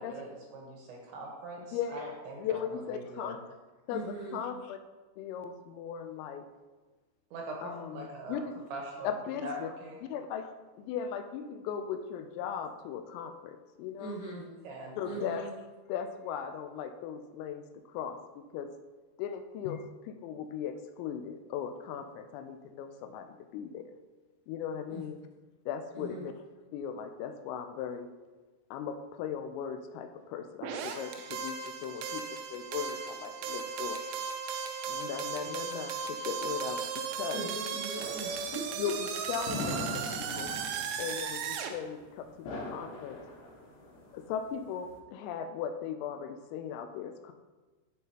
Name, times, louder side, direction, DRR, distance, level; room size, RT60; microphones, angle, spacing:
voice 1, 0.0-3.3 7.3-8.4 8.7-9.1 9.4-10.0 14.4-15.2, right 2 dB, 75° right, -1 dB, 3.0 m, -42 dB
voice 2, 2.4-3.4 3.9-4.0 4.3-4.8 5.2-6.5 7.6-8.5 9.0-9.7 10.1-14.2 15.0-15.5 15.9-18.2 18.5-18.7 19.2-23.9 24.5-25.2 25.7-26.3 26.7-28.1 28.7-34.0 34.9-37.5 38.8-40.6 41.0-43.2 44.1-47.3, left 8 dB, 85° left, 7 dB, 3.2 m, -38 dB
voice 3, 3.9-4.4 14.0-14.5 15.0-15.5 24.9-25.0 25.9-26.3 37.3-38.9, right 2 dB, 50° left, -7 dB, 3.5 m, -40 dB
sound 1, 30.6-41.7, right 6 dB, 90° right, 3.6 m, -36 dB
sound 2, 37.9-45.0, left 2 dB, 65° left, 3.9 m, -42 dB
14.0 x 5.5 x 2.9 m, 1.3 s
omnidirectional pair, 6.0 m